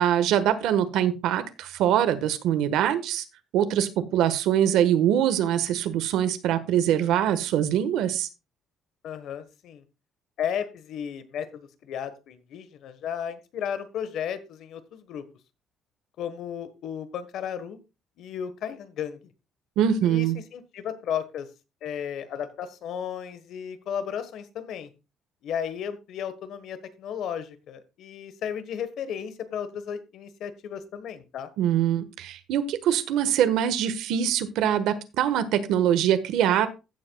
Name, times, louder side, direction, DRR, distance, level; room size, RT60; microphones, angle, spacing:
voice 1, 0.0-3.2 3.5-8.3 19.8-20.4 31.6-36.7, right 10 dB, 75° right, 11 dB, 1.3 m, -23 dB
voice 2, 9.0-9.8 10.4-15.2 16.2-17.8 18.2-19.2 20.0-21.5 21.8-24.9 25.4-31.5, left 8 dB, 60° left, 12 dB, 1.3 m, -34 dB
15.5 x 7.7 x 2.3 m, 0.27 s
cardioid pair, 160°, 0 cm